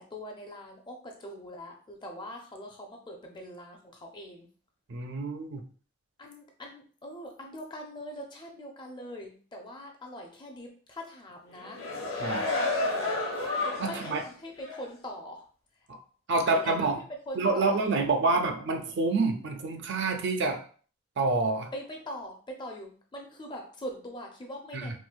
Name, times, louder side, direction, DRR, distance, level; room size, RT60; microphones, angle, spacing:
voice 1, 0.0-4.5 6.2-15.5 16.4-18.4 21.7-25.0, equal, 20° left, 1 dB, 0.4 m, -43 dB
voice 2, 4.9-5.6 12.2-12.5 13.8-14.2 16.3-17.0 17.4-20.6 21.2-21.7 24.7-24.9, right 3 dB, 50° right, 6 dB, 0.4 m, -27 dB
sound 1, 11.5-14.2 14.7-14.8, left 2 dB, 60° left, 0.9 m, -31 dB
4.3 x 2.0 x 2.4 m, 0.43 s
head